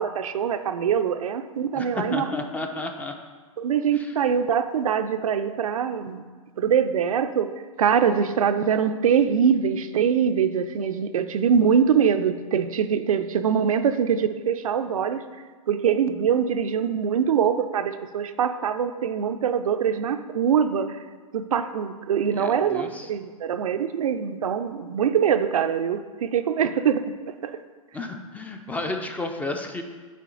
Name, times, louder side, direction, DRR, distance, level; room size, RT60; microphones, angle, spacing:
voice 1, 0.0-2.3 3.6-6.2 6.6-7.5 7.8-15.2 15.7-21.0 21.3-27.0 27.4-27.6, right 7 dB, 80° right, 9 dB, 0.4 m, -23 dB
voice 2, 1.7-3.1 3.9-4.1 22.3-23.1 27.9-29.8, left 2 dB, 10° left, 5 dB, 0.4 m, -32 dB
7.6 x 3.3 x 3.8 m, 1.4 s
hypercardioid pair, 115°, 18 cm